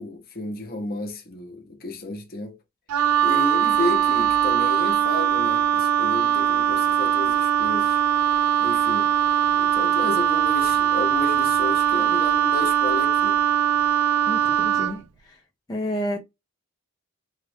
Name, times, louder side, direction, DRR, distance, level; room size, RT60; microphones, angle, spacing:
voice 1, 0.0-2.6 3.2-8.0 8.6-9.1 9.6-13.4, left 2 dB, 40° left, 0.9 m, -32 dB
Wind instrument woodwind instrument, 2.9-15.0, right 10 dB, 80° right, 0.4 m, -21 dB
voice 2, 14.3-15.4 15.7-16.2, equal, 15° left, 0.6 m, -30 dB
3.6 x 2.5 x 3.3 m
head